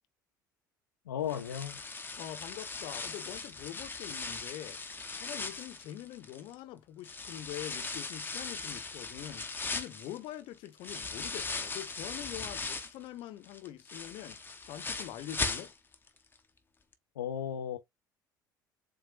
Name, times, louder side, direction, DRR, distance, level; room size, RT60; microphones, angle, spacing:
voice 1, 1.1-1.8 17.2-17.8, left 9 dB, 70° left, 0.6 m, -35 dB
sound 1, 1.3-6.5 7.0-13.0 13.4-16.1 16.4-16.5 16.9-17.0, left 4 dB, 20° left, 1.0 m, -39 dB
voice 2, 2.2-15.7, left 13 dB, 50° left, 1.0 m, -44 dB
7.4 x 2.6 x 2.5 m
figure-of-eight pair, 60°, 10 cm